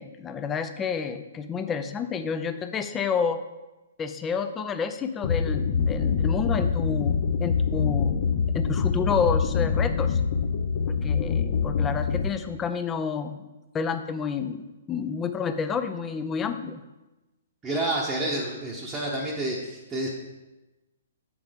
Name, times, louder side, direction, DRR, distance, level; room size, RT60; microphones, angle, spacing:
voice 1, 0.0-3.4 4.0-8.2 8.5-10.2 10.9-13.4 13.7-16.8, left 6 dB, 15° left, 9 dB, 0.5 m, -29 dB
sound 1, 5.2-12.3, left 6 dB, 55° left, 0.7 m, -25 dB
voice 2, 17.6-20.1, right 1 dB, 15° right, -5 dB, 0.9 m, -29 dB
7.8 x 4.5 x 5.2 m, 1.1 s
hypercardioid pair, 150°, 0 cm